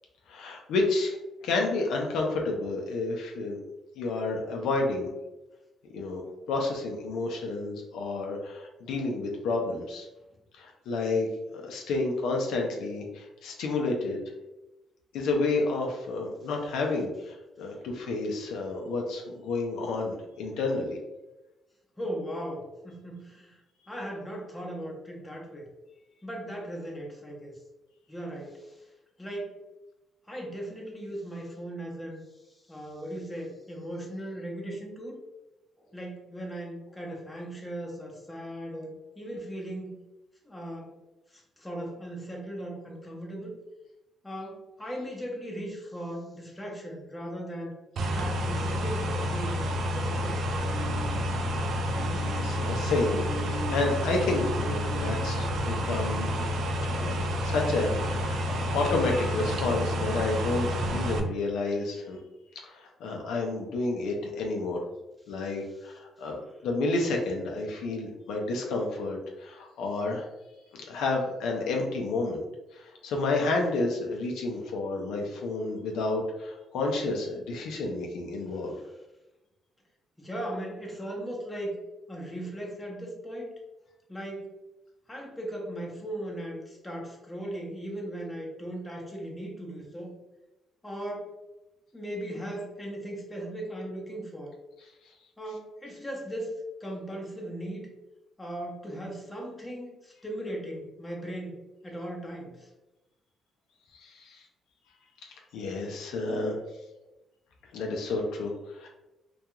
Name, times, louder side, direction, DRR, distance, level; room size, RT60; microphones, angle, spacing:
voice 1, 0.3-1.2 1.4-3.6 4.0-5.1 5.9-6.2 6.5-10.1 10.5-11.3 11.5-14.2 15.1-21.0 52.1-56.3 56.8-62.2 62.6-64.8 65.3-66.4 66.6-70.3 70.7-72.4 72.7-78.8 103.9-104.4 105.2-106.5 107.7-108.9, left 3 dB, 85° left, 1 dB, 0.4 m, -30 dB
voice 2, 22.0-23.6 23.9-25.7 26.2-27.6 28.1-28.9 29.2-29.6 30.3-35.2 35.8-39.9 40.4-40.9 41.3-43.5 44.2-47.7 48.1-50.4 65.4-65.9 78.6-78.8 80.2-81.8 82.1-83.5 84.1-84.5 85.1-90.1 90.8-91.4 91.9-94.5 95.4-97.9 98.4-102.7, right 1 dB, 15° left, -2 dB, 0.8 m, -38 dB
sound 1, 48.0-61.2, equal, 70° right, 0.4 m, -29 dB
sound 2, 49.6-61.0 61.5-61.6, right 2 dB, 45° left, 0.8 m, -46 dB
2.3 x 2.3 x 2.8 m, 0.99 s
cardioid pair, 90°, 0 cm